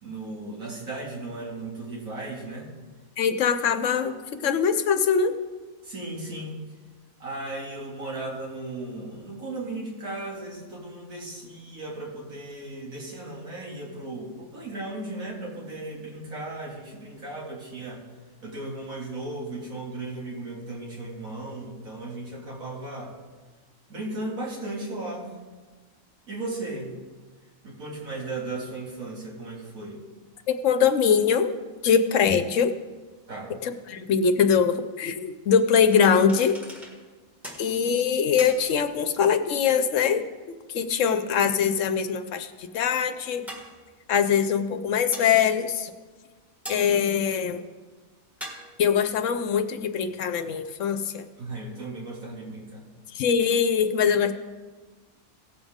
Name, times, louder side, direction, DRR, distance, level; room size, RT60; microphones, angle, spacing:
voice 1, 0.0-2.7 5.8-6.6 7.2-18.0 18.4-23.2 23.9-25.4 26.3-27.0 27.6-30.0 33.3-33.6 51.4-52.9, right 2 dB, 90° right, -3 dB, 2.6 m, -36 dB
voice 2, 3.2-4.1 4.4-5.4 30.5-31.5 31.8-32.7 33.6-36.6 37.6-40.3 40.7-43.5 44.1-45.9 46.7-47.6 48.8-51.2 53.1-54.3, left 7 dB, 70° left, 9 dB, 1.0 m, -22 dB
sound 1, 35.9-37.1 37.4-37.9 38.4-39.1 40.9-41.0 43.5-44.0 45.1-45.6 46.7-47.3 48.4-48.9, equal, ahead, 1.6 m, -42 dB
17.5 x 7.2 x 3.6 m, 1.3 s
omnidirectional pair, 1.4 m